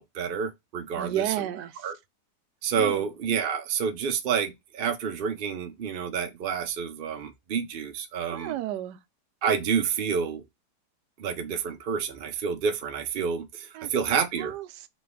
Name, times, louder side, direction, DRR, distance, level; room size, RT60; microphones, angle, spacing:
voice 1, 0.0-1.3 1.8-1.9 2.6-8.5 9.4-10.4 11.2-14.5, right 6 dB, 65° right, 0.5 m, -29 dB
voice 2, 1.0-1.7 2.8-3.1 8.3-9.0 13.7-13.9 14.3-14.9, right 12 dB, 85° right, 1.2 m, -32 dB
4.0 x 3.0 x 3.4 m
omnidirectional pair, 1.8 m